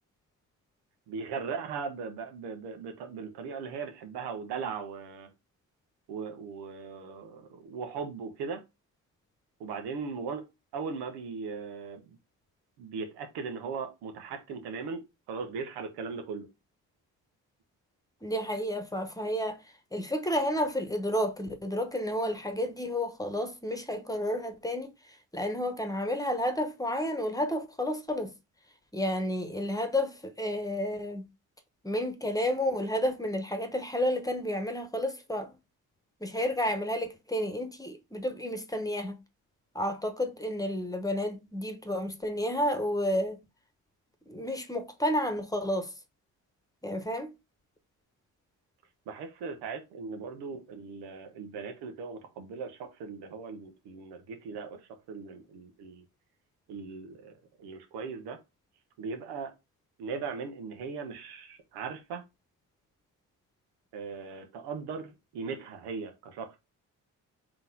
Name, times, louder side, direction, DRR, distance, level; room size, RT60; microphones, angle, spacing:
voice 1, 1.1-5.3 6.1-8.6 9.6-10.4 10.7-12.2 12.8-15.0 15.3-16.5 49.1-54.8 55.1-56.0 56.7-57.3 57.6-58.4 59.0-59.5 60.0-62.2 63.9-66.6, right 5 dB, 85° right, 1.1 m, -38 dB
voice 2, 18.2-19.6 19.9-24.9 25.3-28.3 28.9-31.3 31.8-35.6 36.2-39.2 39.7-43.4 44.3-45.9 46.8-47.3, left 1 dB, 10° left, 1.1 m, -31 dB
3.9 x 3.0 x 3.8 m
supercardioid pair, 55°, 38 cm